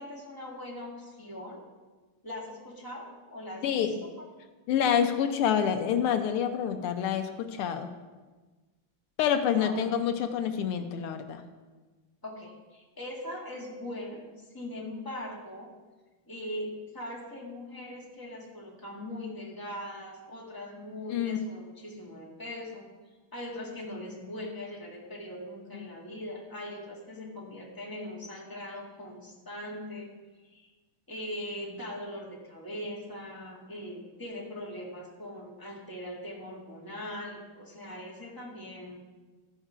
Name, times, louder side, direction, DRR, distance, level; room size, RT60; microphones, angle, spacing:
voice 1, 0.0-1.6 2.2-4.3 9.5-9.8 12.2-14.2 14.5-15.7 16.3-22.9 23.3-30.1 30.4-30.7 31.1-39.0, left 1 dB, 10° left, -4 dB, 1.8 m, -40 dB
voice 2, 3.6-4.0 4.7-7.9 9.2-11.4 21.1-21.4 25.7-25.9, left 8 dB, 85° left, 7 dB, 1.7 m, -27 dB
14.5 x 5.5 x 5.0 m, 1.3 s
omnidirectional pair, 2.4 m